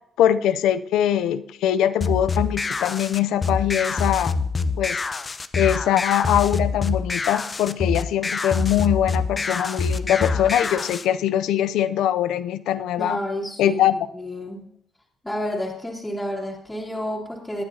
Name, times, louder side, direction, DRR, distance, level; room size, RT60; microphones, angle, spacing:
voice 1, 0.2-4.4 4.8-5.0 5.6-13.2 13.6-14.0, left 11 dB, 85° left, 12 dB, 0.5 m, -22 dB
sound 1, 2.0-11.0, left 4 dB, 30° left, 0.7 m, -26 dB
voice 2, 13.0-13.8 14.1-14.6 15.2-17.6, left 1 dB, 10° left, -5 dB, 2.7 m, -30 dB
20.0 x 9.5 x 2.8 m, 0.69 s
cardioid pair, 90°, 0 cm